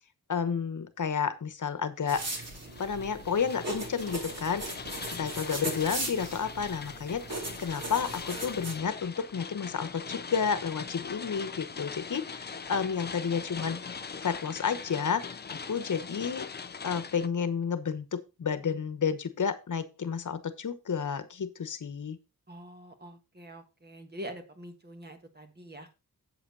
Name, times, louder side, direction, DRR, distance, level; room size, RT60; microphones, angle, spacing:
voice 1, 0.3-2.2 2.8-4.6 5.1-7.2 7.6-13.8 14.2-16.5 16.8-22.2, left 6 dB, 55° left, 12 dB, 1.1 m, -31 dB
sound 1, 2.0-17.3, left 5 dB, 30° left, 0.4 m, -42 dB
sound 2, 2.1-8.7, right 2 dB, 45° right, 2.7 m, -38 dB
voice 2, 22.5-25.9, right 1 dB, 25° right, 6 dB, 1.5 m, -45 dB
8.0 x 8.0 x 4.0 m, 0.28 s
wide cardioid pair, 165°, 36 cm